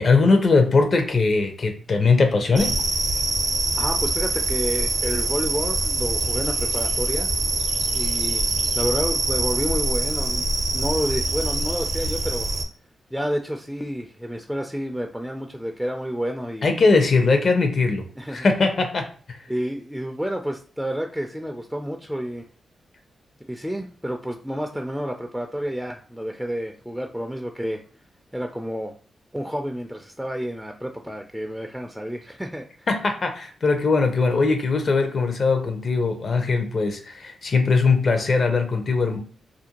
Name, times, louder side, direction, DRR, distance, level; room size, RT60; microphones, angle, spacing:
voice 1, 0.0-2.8 16.6-18.0 18.3-19.4 32.9-39.2, left 4 dB, 55° left, 6 dB, 0.6 m, -20 dB
sound 1, 2.6-12.6, right 2 dB, 55° right, 0.6 m, -24 dB
voice 2, 3.8-7.3 7.9-8.4 8.7-10.5 10.7-12.5 13.1-16.7 18.2-18.5 19.5-22.5 23.5-27.8 28.3-28.9 29.3-32.9, equal, 5° right, 3 dB, 0.3 m, -30 dB
2.5 x 2.1 x 2.8 m, 0.42 s
cardioid pair, 55°, 0 cm